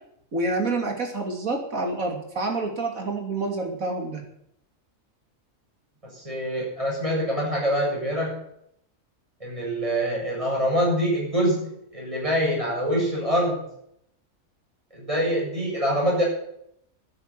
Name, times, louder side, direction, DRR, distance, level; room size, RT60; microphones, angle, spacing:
voice 1, 0.3-4.2, right 2 dB, 85° right, 2 dB, 3.3 m, -28 dB
voice 2, 6.0-8.4 9.4-13.6 14.9-16.2, equal, 25° right, -3 dB, 7.7 m, -25 dB
12.0 x 10.0 x 9.3 m, 0.73 s
omnidirectional pair, 1.4 m